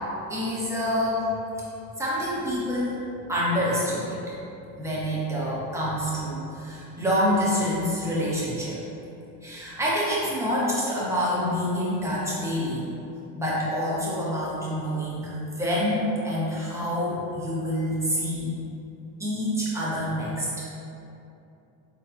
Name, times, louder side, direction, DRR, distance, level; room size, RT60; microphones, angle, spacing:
voice 1, 0.3-1.3 2.0-2.9 3.3-4.2 4.8-8.8 9.4-12.9 13.3-18.5 19.2-20.5, equal, 5° right, -8 dB, 1.4 m, -27 dB
4.2 x 3.9 x 2.8 m, 2.8 s
hypercardioid pair, 80°, 49 cm